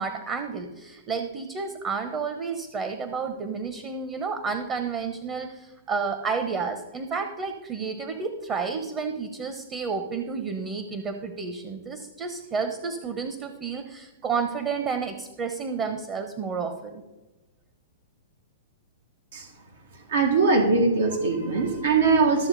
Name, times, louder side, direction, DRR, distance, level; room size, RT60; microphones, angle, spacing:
voice 1, 0.0-17.0, right 5 dB, 30° right, 7 dB, 1.0 m, -31 dB
voice 2, 20.1-22.5, right 4 dB, 80° right, 2 dB, 2.1 m, -21 dB
13.5 x 7.0 x 4.1 m, 1.1 s
hypercardioid pair, 125°, 0 cm